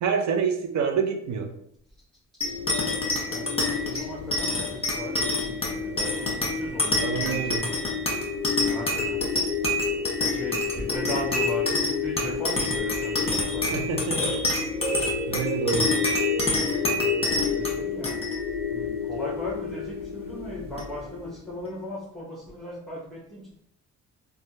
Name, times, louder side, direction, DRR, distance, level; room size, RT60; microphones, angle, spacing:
voice 1, 0.0-1.5 7.0-7.6 13.7-14.4 15.3-15.9, right 6 dB, 65° right, 4 dB, 0.5 m, -27 dB
sound 1, 2.4-21.2, left 3 dB, 20° left, 1.1 m, -27 dB
voice 2, 2.4-7.7 8.6-9.3 9.8-13.9 14.9-15.0 17.2-18.4 18.7-23.6, left 1 dB, ahead, -6 dB, 0.7 m, -38 dB
3.2 x 2.2 x 2.7 m, 0.70 s
cardioid pair, 90°, 30 cm